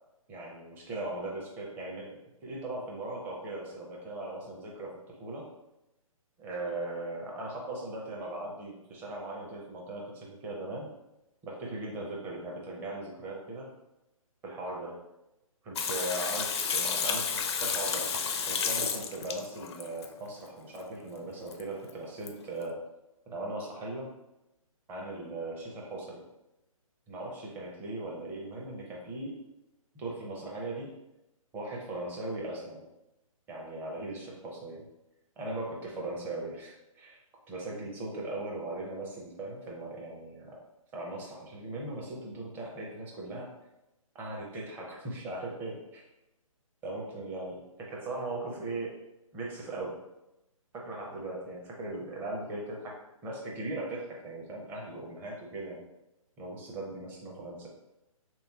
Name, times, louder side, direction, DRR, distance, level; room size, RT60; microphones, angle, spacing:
voice 1, 0.3-5.5 6.4-10.9 11.4-13.7 14.4-15.0 15.6-18.2 18.5-22.8 23.3-24.1 24.9-26.2 27.1-29.4 29.9-30.9 31.5-32.8 33.5-34.8 35.4-37.2 37.5-40.5 40.9-43.5 44.1-46.0 46.8-49.0 49.3-50.0 50.7-55.8 56.4-57.7, right 2 dB, 10° right, -2 dB, 0.6 m, -39 dB
Water tap faucet / Sink (filling or washing), 15.8-20.1 21.5-21.6 21.9-22.0 22.3-22.4, left 6 dB, 50° left, 0.4 m, -31 dB
3.4 x 3.0 x 3.4 m, 0.92 s
hypercardioid pair, 145°, 18 cm